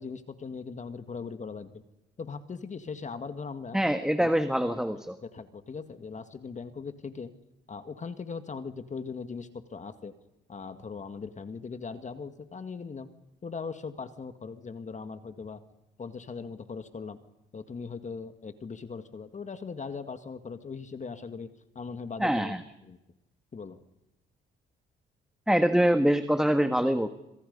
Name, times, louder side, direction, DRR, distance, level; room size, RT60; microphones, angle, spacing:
voice 1, 0.0-1.8 2.2-3.8 4.2-4.3 5.2-7.3 7.7-10.1 10.5-13.1 13.4-15.6 16.0-17.2 17.5-21.5 21.8-22.5 22.8-23.0 23.5-23.8, left 5 dB, 35° left, 9 dB, 1.9 m, -39 dB
voice 2, 3.7-5.2 22.2-22.6 25.5-27.1, equal, 5° right, 8 dB, 1.6 m, -24 dB
26.5 x 26.5 x 5.4 m, 0.90 s
cardioid pair, 90°, 20 cm